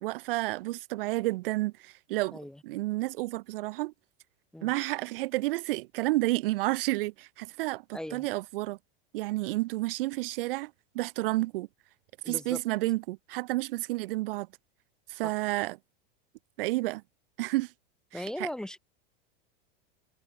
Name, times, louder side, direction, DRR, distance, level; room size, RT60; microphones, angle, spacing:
voice 1, 0.0-2.4 2.6-3.9 4.6-8.8 9.1-11.7 12.3-14.5 15.1-15.8 16.6-17.0 17.4-17.7 18.1-18.5, right 20 dB, 70° right, 0.5 m, -30 dB
voice 2, 7.9-8.3 12.2-12.6 15.2-15.3 18.1-18.8, left 1 dB, ahead, 0.9 m, -38 dB
supercardioid pair, 145°, 29 cm